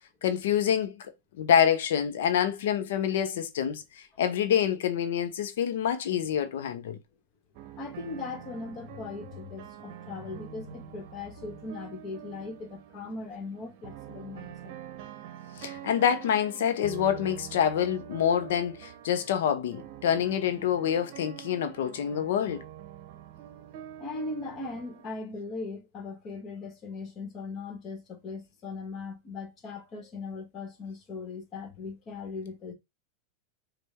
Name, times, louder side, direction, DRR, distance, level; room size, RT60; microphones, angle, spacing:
voice 1, 0.2-1.0 1.4-3.8 4.2-7.0 15.6-22.6, left 9 dB, 70° left, 0.9 m, -26 dB
sound 1, 7.5-25.1, right 11 dB, 55° right, 0.7 m, -46 dB
voice 2, 7.8-14.7 24.0-32.7, left 3 dB, 35° left, 1.7 m, -39 dB
5.2 x 2.6 x 3.5 m
hypercardioid pair, 100°, 0 cm